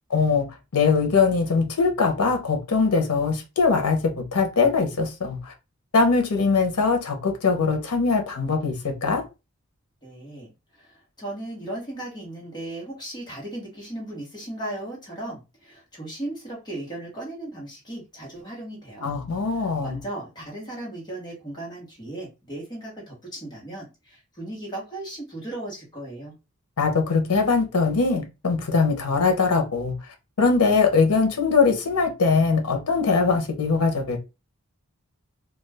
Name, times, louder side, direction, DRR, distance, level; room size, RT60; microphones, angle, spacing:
voice 1, 0.1-0.5 0.7-5.5 5.9-9.2 19.0-20.0 26.8-29.9 30.4-34.2, left 4 dB, 90° left, 0.7 m, -21 dB
voice 2, 10.0-19.1 19.5-26.3, right 1 dB, 20° left, 1.1 m, -36 dB
2.4 x 2.3 x 3.3 m
head